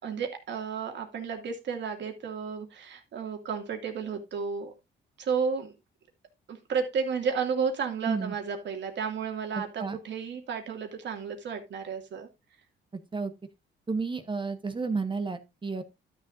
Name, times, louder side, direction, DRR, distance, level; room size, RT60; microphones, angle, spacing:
voice 1, 0.0-4.7 5.2-5.7 6.5-12.3, right 6 dB, 65° right, 3 dB, 2.4 m, -32 dB
voice 2, 8.0-8.3 9.5-10.0 13.1-13.3 13.9-15.8, right 4 dB, 25° right, 9 dB, 1.0 m, -31 dB
12.5 x 6.7 x 2.6 m, 0.24 s
cardioid pair, 90°, 20 cm